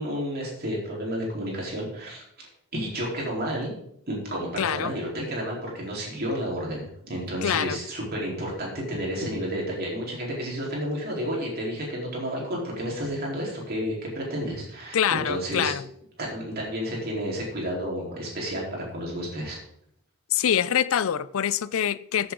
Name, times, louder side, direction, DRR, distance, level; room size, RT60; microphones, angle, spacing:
voice 1, 0.0-2.2 2.7-3.7 4.1-15.7 16.2-19.6, equal, 45° right, 4.0 m, -31 dB
voice 2, 4.6-4.9 7.4-7.8 14.9-15.8 20.3-22.3, left 9 dB, 65° left, 0.4 m, -25 dB
14.0 x 7.8 x 3.8 m
head